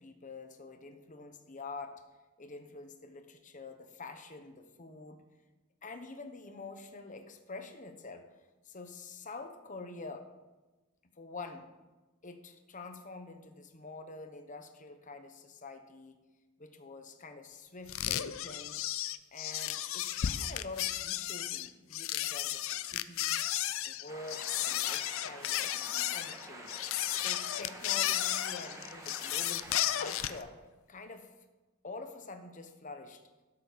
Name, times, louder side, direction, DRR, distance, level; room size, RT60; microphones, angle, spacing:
voice 1, 0.0-1.9 2.4-5.2 5.8-8.2 8.6-10.3 11.2-11.7 12.2-16.2 16.6-18.9 19.3-23.4 23.8-26.8 27.1-29.7 29.9-30.5 30.9-31.3 31.8-33.2, left 3 dB, 35° left, 6 dB, 1.0 m, -46 dB
sound 1, 17.9-30.4, left 12 dB, 60° left, 0.4 m, -34 dB
sound 2, 24.1-30.4, right 1 dB, 15° right, 1.3 m, -48 dB
12.5 x 7.1 x 5.2 m, 1.1 s
head